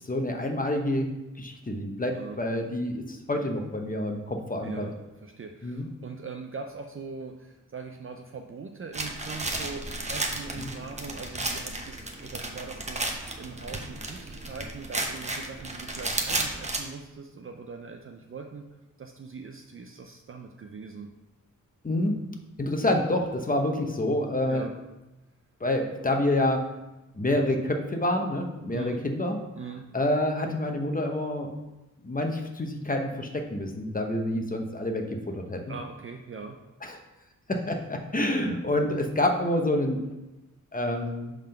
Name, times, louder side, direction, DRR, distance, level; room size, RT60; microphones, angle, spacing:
voice 1, 0.0-1.1 1.4-4.9 5.6-5.9 10.6-10.7 21.8-22.2 22.6-24.7 25.6-26.6 27.1-29.4 29.9-31.5 32.0-35.7 36.8-37.0 37.5-40.0 40.7-41.3, left 1 dB, 25° left, 3 dB, 0.9 m, -27 dB
voice 2, 4.6-4.9 5.2-18.7 19.0-21.1 24.5-24.7 28.7-29.0 29.6-29.9 35.7-36.6, right 4 dB, 40° right, 3 dB, 0.5 m, -41 dB
sound 1, 8.9-16.8, right 2 dB, 20° right, 0.9 m, -33 dB
5.4 x 3.7 x 5.6 m, 1.0 s
wide cardioid pair, 85°, 33 cm